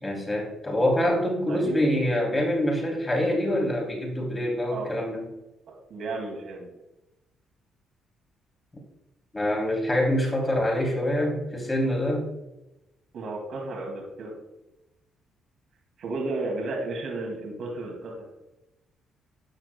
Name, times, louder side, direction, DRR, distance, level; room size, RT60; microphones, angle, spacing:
voice 1, 0.0-5.3 9.3-12.3, left 1 dB, 20° left, -1 dB, 3.1 m, -25 dB
voice 2, 1.5-1.8 4.7-4.9 5.9-6.7 13.1-14.3 16.0-18.2, right 2 dB, 65° right, 0 dB, 2.4 m, -33 dB
12.0 x 7.5 x 2.3 m, 0.95 s
cardioid pair, 90°, 0 cm